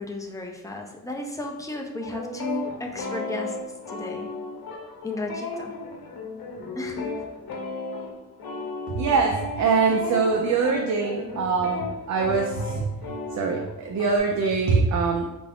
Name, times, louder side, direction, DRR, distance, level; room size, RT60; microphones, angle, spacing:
voice 1, 0.0-3.6 3.9-4.3 5.0-5.7 6.8-7.1, left 2 dB, 10° left, 1 dB, 0.4 m, -34 dB
sound 1, 2.0-14.2, left 2 dB, 80° left, 0.8 m, -34 dB
voice 2, 8.9-12.9 13.3-15.2, right 4 dB, 55° right, 1 dB, 0.5 m, -23 dB
4.5 x 2.6 x 3.4 m, 1.0 s
wide cardioid pair, 130°, 36 cm